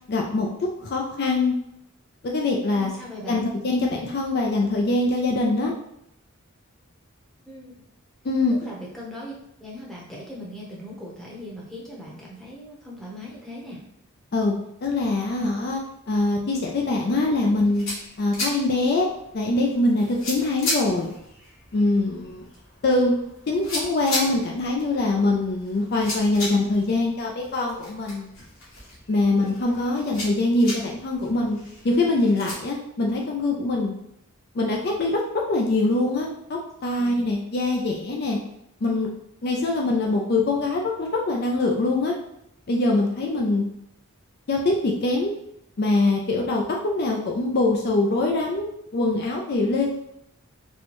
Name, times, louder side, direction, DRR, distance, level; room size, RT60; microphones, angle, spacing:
voice 1, 0.1-0.5 0.8-1.5 2.2-2.9 3.3-5.7 8.2-8.5 14.3-14.5 14.8-15.8 16.1-17.9 18.2-19.1 19.3-21.1 21.7-22.4 22.8-23.1 23.5-28.3 29.1-31.6 31.8-33.9 34.5-35.2 35.5-38.4 38.8-39.1 39.4-42.1 42.7-43.6 44.5-45.3 45.8-50.0, left 2 dB, 45° left, 0 dB, 0.4 m, -23 dB
voice 2, 2.7-3.5 7.5-7.7 8.6-9.3 9.6-13.8 37.0-37.2, equal, ahead, -5 dB, 0.8 m, -39 dB
sound 1, 17.4-32.5, left 1 dB, 65° left, 1.5 m, -36 dB
4.3 x 2.2 x 2.9 m, 0.78 s
head